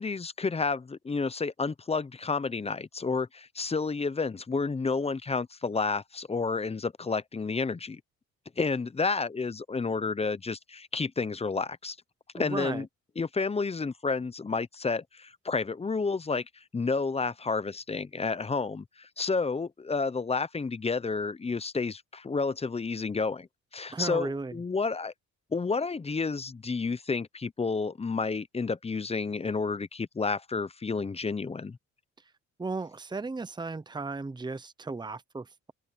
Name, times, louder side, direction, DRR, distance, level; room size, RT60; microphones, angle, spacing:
voice 1, 0.0-8.0 8.6-12.0 12.3-12.9 13.2-16.5 16.7-23.5 23.7-25.1 25.5-31.8, left 4 dB, 20° left, 0.7 m, -30 dB
voice 2, 12.3-12.8 23.9-24.6 32.6-35.7, right 3 dB, 15° right, 0.9 m, -35 dB
open air
cardioid pair, 90°, 30 cm